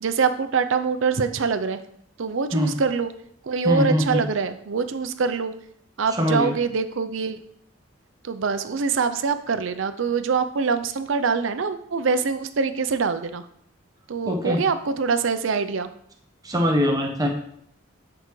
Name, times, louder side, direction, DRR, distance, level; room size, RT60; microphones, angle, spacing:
voice 1, 0.0-1.8 2.2-3.1 3.4-5.5 6.0-7.4 8.2-13.4 14.1-15.9, right 5 dB, 70° right, 11 dB, 0.5 m, -24 dB
voice 2, 3.6-4.2 6.1-6.6 14.2-14.6 16.4-17.3, equal, 20° right, 1 dB, 1.0 m, -22 dB
8.9 x 4.7 x 3.2 m, 0.68 s
head